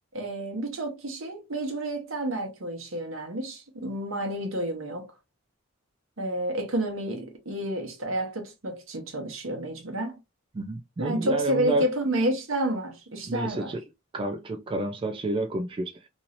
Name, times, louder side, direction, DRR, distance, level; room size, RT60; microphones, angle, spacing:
voice 1, 0.1-5.1 6.2-10.2 11.0-13.7, right 1 dB, 75° right, 1.0 m, -30 dB
voice 2, 10.5-11.9 13.3-13.8 14.1-16.0, right 2 dB, 25° right, 0.3 m, -29 dB
3.0 x 2.7 x 2.5 m
head